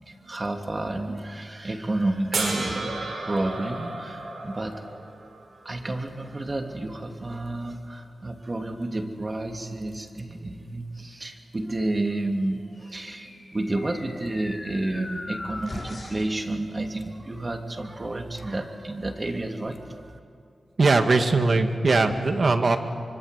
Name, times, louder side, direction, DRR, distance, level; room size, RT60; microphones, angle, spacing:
voice 1, 0.1-3.0 3.2-5.0 5.6-20.2, right 2 dB, 35° right, 4 dB, 2.9 m, -30 dB
sound 1, 2.3-5.6 7.6-7.7, right 3 dB, 80° right, 5.7 m, -32 dB
sound 2, 12.7-16.4, left 2 dB, 35° left, 6.0 m, -40 dB
voice 2, 20.8-22.8, right 3 dB, 55° right, 6 dB, 2.2 m, -20 dB
25.0 x 25.0 x 8.3 m, 2.4 s
wide cardioid pair, 70°, 0 cm